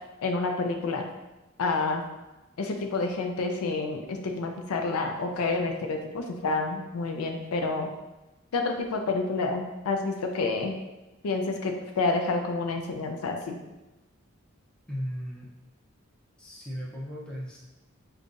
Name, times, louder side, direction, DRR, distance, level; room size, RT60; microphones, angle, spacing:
voice 1, 0.2-1.0 1.6-2.0 2.6-7.9 8.5-10.7 11.2-13.6, left 3 dB, 90° left, 4 dB, 0.4 m, -29 dB
voice 2, 14.9-15.5 16.4-17.6, equal, 5° left, -6 dB, 0.6 m, -36 dB
5.3 x 2.3 x 2.5 m, 1.1 s
head